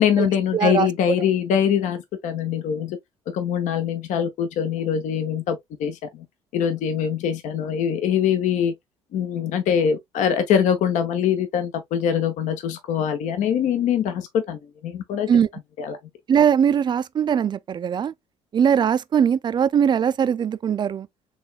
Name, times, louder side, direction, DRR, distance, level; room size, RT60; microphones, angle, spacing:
voice 1, 0.0-3.0 3.3-6.3 6.5-8.7 9.1-15.3 15.8-16.0, left 8 dB, 60° left, 0.7 m, -23 dB
voice 2, 0.5-0.9 15.3-15.5 16.3-18.1 18.5-21.1, right 8 dB, 30° right, 0.3 m, -20 dB
4.0 x 3.4 x 2.2 m
hypercardioid pair, 55°, 15 cm